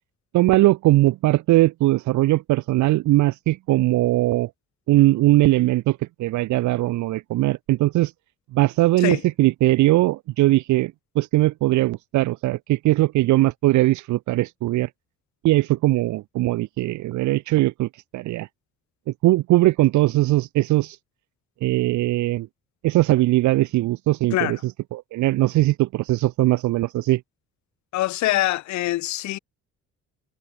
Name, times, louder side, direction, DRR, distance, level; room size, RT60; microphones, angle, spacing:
voice 1, 0.3-4.5 4.9-8.1 8.5-14.9 15.4-18.5 19.2-21.0 21.6-22.5 22.8-27.2, right 17 dB, 75° right, 0.5 m, -20 dB
voice 2, 27.9-29.4, left 16 dB, 70° left, 0.5 m, -24 dB
cardioid pair, 90°, 30 cm